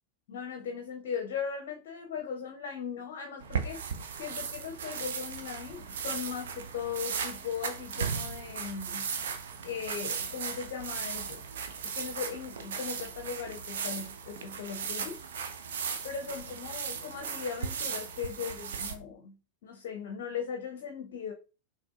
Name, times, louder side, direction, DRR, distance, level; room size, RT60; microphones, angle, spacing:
voice 1, 0.3-3.8 4.1-9.1 9.6-11.4 11.8-15.2 16.0-19.4 19.6-21.3, left 7 dB, 55° left, 0.5 m, -38 dB
sound 1, 3.4-18.9, right 6 dB, 60° right, 0.7 m, -37 dB
5.9 x 3.0 x 2.4 m
figure-of-eight pair, 90°, 0 cm